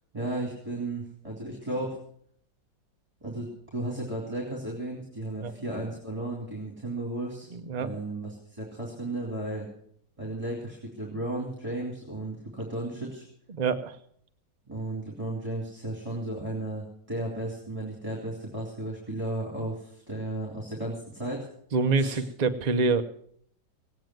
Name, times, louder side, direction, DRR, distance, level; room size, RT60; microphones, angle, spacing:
voice 1, 0.1-2.0 3.2-7.5 7.8-9.7 10.2-13.3 14.7-21.5 22.0-22.2, right 1 dB, 15° right, -1 dB, 3.1 m, -34 dB
voice 2, 7.5-7.9 13.5-14.0 21.7-23.0, right 4 dB, 90° right, 8 dB, 0.3 m, -26 dB
17.5 x 9.1 x 7.8 m, 0.66 s
omnidirectional pair, 2.0 m